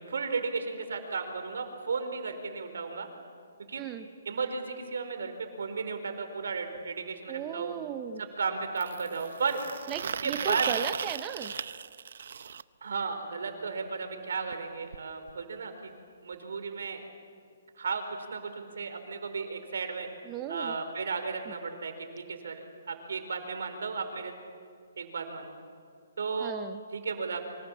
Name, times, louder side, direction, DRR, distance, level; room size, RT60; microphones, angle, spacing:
voice 1, 0.0-3.1 3.6-3.9 4.2-7.7 8.2-9.6 10.2-10.7 12.8-15.9 16.2-17.0 17.7-18.0 18.3-20.1 20.5-24.3 25.0-25.5 26.2-26.5 26.9-27.4, right 5 dB, 75° right, 7 dB, 4.5 m, -34 dB
sound 1, 6.8-6.9 8.8-12.6 14.5-14.6 14.9-15.0 15.3-15.4 16.3-16.4, right 7 dB, 60° right, 0.7 m, -36 dB
voice 2, 7.3-8.2 9.9-11.5 20.3-20.7 26.4-26.8, right 10 dB, 15° right, 9 dB, 0.7 m, -36 dB
28.0 x 25.5 x 7.3 m, 2.3 s
hypercardioid pair, 170°, 0 cm